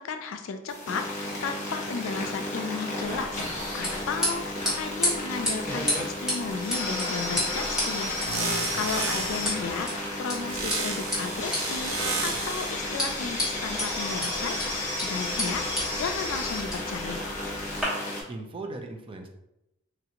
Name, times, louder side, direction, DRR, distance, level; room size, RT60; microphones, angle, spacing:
voice 1, 0.0-8.2 8.8-11.9 12.2-14.6 14.9-15.7 16.0-17.2, left 5 dB, 65° left, 8 dB, 0.3 m, -34 dB
sound 1, 0.7-18.2, left 1 dB, 35° left, 1.0 m, -32 dB
sound 2, 3.0-17.8, left 1 dB, 5° right, 1.1 m, -34 dB
sound 3, 7.3-9.6 10.5-12.8, right 3 dB, 75° right, 0.6 m, -33 dB
voice 2, 8.5-8.9 17.9-19.3, right 2 dB, 25° right, 3 dB, 0.3 m, -40 dB
3.1 x 2.5 x 2.8 m, 0.86 s
head